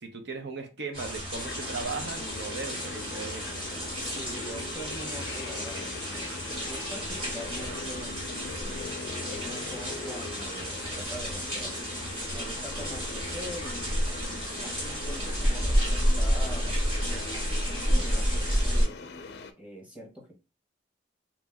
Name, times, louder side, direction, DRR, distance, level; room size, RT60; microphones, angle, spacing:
voice 1, 0.0-3.7, right 4 dB, 65° right, 0.7 m, -37 dB
sound 1, 0.9-18.8, equal, 30° right, 1.4 m, -31 dB
sound 2, 1.3-19.5, left 3 dB, 60° left, 0.4 m, -41 dB
voice 2, 4.0-8.2 8.5-11.8 12.3-19.0 19.6-20.4, equal, 5° right, 1.0 m, -44 dB
3.0 x 2.6 x 3.4 m
head